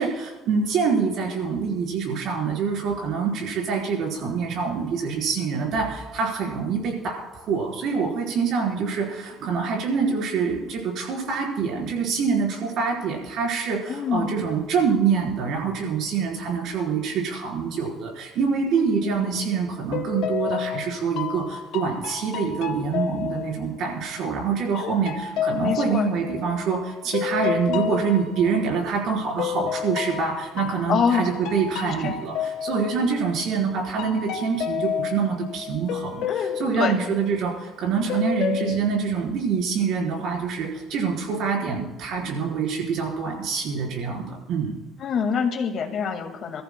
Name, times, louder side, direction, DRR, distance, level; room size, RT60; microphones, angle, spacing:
voice 1, 0.0-44.7, right 5 dB, 70° right, -1 dB, 4.3 m, -25 dB
voice 2, 13.9-14.4 19.0-19.2 24.8-25.2 25.6-26.1 30.9-31.3 31.8-32.2 36.3-37.0 45.0-46.6, left 6 dB, 55° left, 4 dB, 2.0 m, -26 dB
sound 1, 19.2-19.5 19.9-24.2 24.8-29.0 29.4-33.6 34.0-37.7 38.1-38.8, left 9 dB, 85° left, 0.9 m, -31 dB
27.5 x 14.0 x 2.3 m, 1.1 s
cardioid pair, 115°, 0 cm